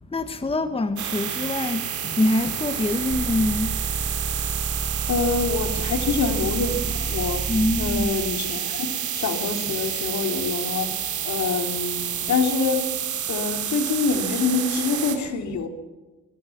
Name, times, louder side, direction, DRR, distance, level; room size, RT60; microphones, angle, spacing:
voice 1, 0.1-3.7 7.5-8.1, left 2 dB, 20° left, 1.4 m, -24 dB
sound 1, 1.0-15.2, right 9 dB, 75° right, 4.7 m, -29 dB
sound 2, 3.1-8.1, right 3 dB, 15° right, 1.2 m, -31 dB
voice 2, 5.1-8.9 9.1-10.9 11.2-12.9 13.3-15.7, left 4 dB, 65° left, 3.4 m, -26 dB
22.0 x 20.5 x 7.3 m
cardioid pair, 90°, 30 cm